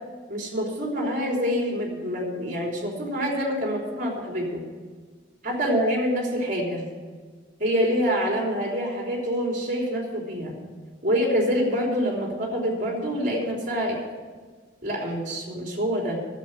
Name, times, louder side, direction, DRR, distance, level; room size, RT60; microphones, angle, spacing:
voice 1, 0.3-4.6 5.4-6.9 7.6-10.6 11.0-14.0 14.8-16.2, equal, 45° right, 0 dB, 3.4 m, -26 dB
11.0 x 7.7 x 9.7 m, 1.5 s
head